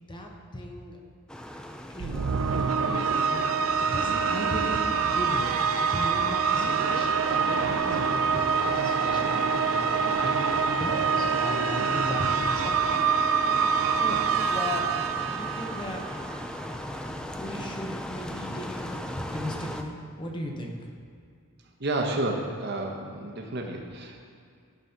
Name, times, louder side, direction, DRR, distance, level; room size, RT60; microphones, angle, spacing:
voice 1, 0.1-1.0 1.9-2.3 2.9-3.7 3.9-12.8 13.6-14.9 15.3-16.1 16.9-17.0 17.4-20.8, left 1 dB, 20° left, 1 dB, 0.8 m, -37 dB
sound 1, 1.3-19.8, equal, 5° left, 0.3 m, -38 dB
sound 2, 2.0-16.4, right 6 dB, 75° right, 0.4 m, -26 dB
voice 2, 21.8-24.2, right 2 dB, 50° right, 2 dB, 1.0 m, -30 dB
12.0 x 4.0 x 5.8 m, 2.2 s
head